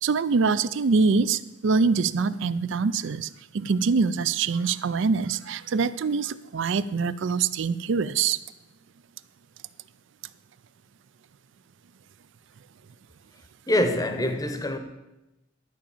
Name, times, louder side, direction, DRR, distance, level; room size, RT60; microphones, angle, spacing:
voice 1, 0.0-8.4, right 5 dB, 60° right, 0.4 m, -24 dB
voice 2, 13.7-14.8, left 1 dB, 15° left, 0.8 m, -24 dB
11.5 x 5.0 x 7.1 m
head